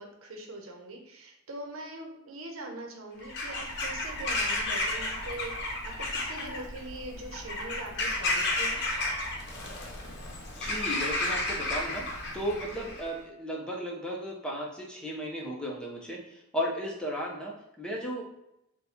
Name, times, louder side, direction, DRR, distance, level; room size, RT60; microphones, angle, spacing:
voice 1, 0.0-8.8, right 2 dB, 85° right, 2 dB, 0.8 m, -42 dB
Bird vocalization bird call bird song / Crow, 3.2-13.1, left 2 dB, 55° left, 0.7 m, -32 dB
voice 2, 10.6-12.0 12.3-18.2, equal, 5° left, -2 dB, 0.7 m, -35 dB
4.1 x 2.3 x 4.1 m, 0.82 s
head